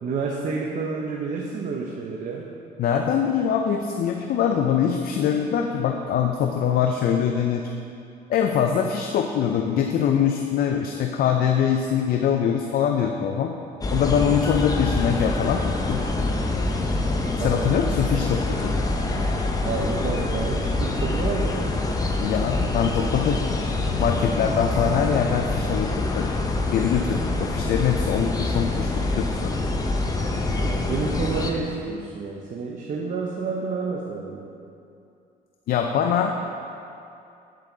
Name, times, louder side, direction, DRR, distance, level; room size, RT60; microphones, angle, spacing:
voice 1, 0.0-2.5 17.4-17.8 19.6-21.8 30.5-34.5, right 4 dB, 50° right, -1 dB, 0.9 m, -29 dB
voice 2, 2.8-7.6 8.3-13.5 13.9-16.0 17.4-18.8 22.2-23.4 24.0-26.3 26.7-29.5 35.7-36.4, left 8 dB, 60° left, 4 dB, 0.6 m, -23 dB
sound 1, 13.8-31.5, left 2 dB, 20° left, 0.8 m, -25 dB
9.1 x 7.6 x 3.9 m, 2.6 s
cardioid pair, 110°, 17 cm